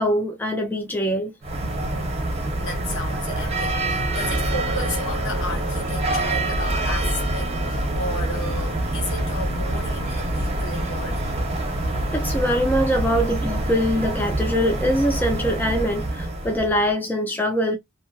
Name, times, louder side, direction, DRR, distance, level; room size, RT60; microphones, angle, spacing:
voice 1, 0.0-1.4 12.1-17.8, equal, 10° left, 0.4 m, -23 dB
sound 1, 1.4-16.9, right 1 dB, 30° right, 0.8 m, -26 dB
voice 2, 2.6-11.2, left 2 dB, 60° left, 0.9 m, -33 dB
2.7 x 2.5 x 2.2 m
head